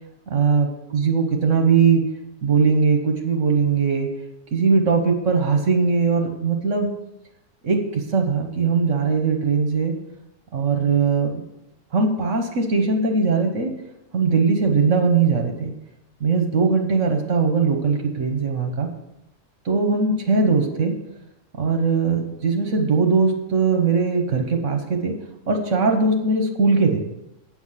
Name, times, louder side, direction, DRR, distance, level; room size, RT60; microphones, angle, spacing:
voice 1, 0.3-0.7 0.9-2.0 2.4-4.1 4.5-6.9 7.6-9.9 10.5-11.4 11.9-13.8 14.1-15.7 16.2-18.9 19.6-21.0 21.6-25.1 25.5-27.0, right 4 dB, 70° right, 4 dB, 1.5 m, -20 dB
8.6 x 7.2 x 5.7 m, 0.87 s
omnidirectional pair, 1.3 m